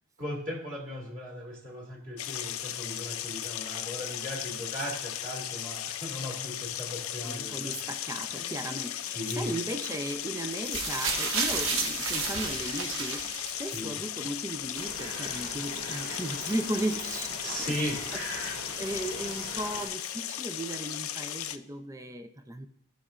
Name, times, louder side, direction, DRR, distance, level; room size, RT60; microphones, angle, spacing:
voice 1, 0.2-7.9 8.3-8.6 9.1-9.6 13.7-14.0 17.4-18.0, equal, 35° right, -3 dB, 2.1 m, -37 dB
sound 1, 2.2-21.6, left 11 dB, 80° left, 0.5 m, -36 dB
voice 2, 7.2-18.0 18.4-22.7, right 1 dB, 15° right, 8 dB, 0.5 m, -36 dB
sound 2, 10.6-13.9 14.8-14.9, right 4 dB, 65° right, 1.2 m, -31 dB
sound 3, 14.7-19.9, right 2 dB, 85° right, 2.1 m, -41 dB
16.5 x 5.6 x 2.5 m, 0.73 s
head